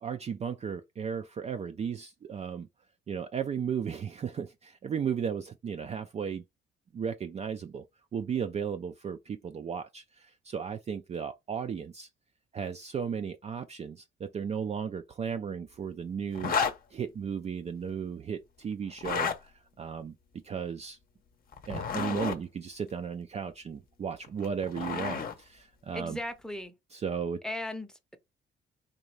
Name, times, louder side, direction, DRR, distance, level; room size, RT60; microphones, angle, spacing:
voice 1, 0.0-2.7 3.1-6.4 6.9-7.8 8.1-12.1 12.5-16.6 16.9-20.1 20.4-21.0 21.7-26.2 26.9-27.4, right 7 dB, 35° right, 0.4 m, -35 dB
sound 1, 16.4-16.8 18.9-19.4 21.5-22.4 24.2-25.3, left 6 dB, 50° left, 0.7 m, -31 dB
voice 2, 25.9-26.7 27.4-28.2, left 1 dB, 5° left, 0.7 m, -37 dB
4.0 x 2.6 x 3.2 m
cardioid pair, 90°, 20 cm